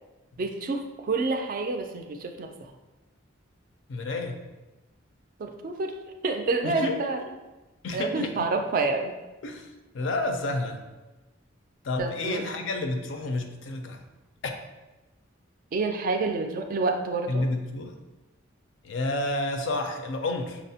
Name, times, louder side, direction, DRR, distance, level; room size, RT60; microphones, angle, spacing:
voice 1, 0.4-2.5 5.4-5.9 6.2-7.2 7.9-9.1 12.0-12.4 15.7-17.5, right 3 dB, 45° right, 5 dB, 0.3 m, -28 dB
voice 2, 3.9-4.3 6.6-7.0 7.8-8.5 9.4-9.7 9.9-10.8 11.8-14.0 14.4-14.5 17.3-18.0 18.8-20.6, left 2 dB, 65° left, 5 dB, 0.4 m, -30 dB
5.6 x 2.0 x 2.7 m, 1.1 s
head